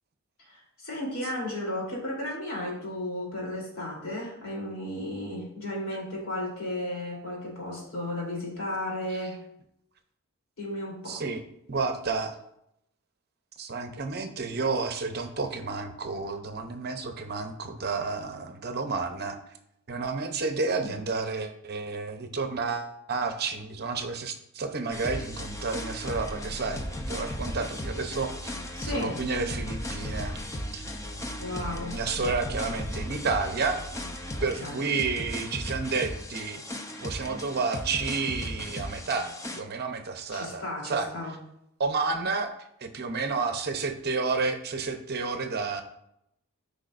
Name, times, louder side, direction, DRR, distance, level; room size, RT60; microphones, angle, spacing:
voice 1, 0.4-9.4 10.6-11.2 20.7-20.9 28.7-29.2 31.4-32.0 34.6-34.7 40.3-41.4, left 1 dB, 65° left, -3 dB, 3.3 m, -34 dB
voice 2, 11.1-11.4 11.7-12.3 13.6-19.4 19.9-26.8 27.1-28.5 28.8-30.3 30.7-30.8 31.9-33.8 34.4-36.6 37.0-41.1 41.8-42.5 42.8-45.8, right 4 dB, 45° right, 6 dB, 0.8 m, -30 dB
sound 1, 24.9-39.6, equal, 15° left, 0.6 m, -36 dB
13.0 x 5.1 x 2.5 m, 0.77 s
head